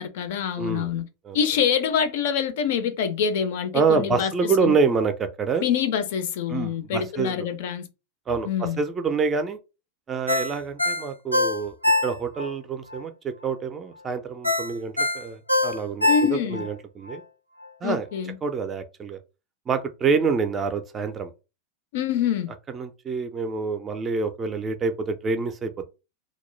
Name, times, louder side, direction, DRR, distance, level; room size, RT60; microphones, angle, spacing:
voice 1, 0.0-1.1 1.3-4.8 5.6-7.9 8.4-8.8 16.1-16.6 17.8-18.4 21.9-22.5, left 7 dB, 55° left, 0.4 m, -25 dB
voice 2, 0.6-0.9 1.2-1.4 3.7-5.7 6.5-7.3 8.3-9.6 10.1-11.8 12.0-17.2 17.8-18.1 18.4-19.2 19.7-21.3 22.7-25.9, right 5 dB, 20° right, 0.4 m, -26 dB
Ringtone, 10.3-12.5 12.9-13.0 14.4-16.7 17.1-17.2, left 2 dB, 90° right, 0.4 m, -23 dB
2.3 x 2.1 x 3.1 m
figure-of-eight pair, 90°, 0 cm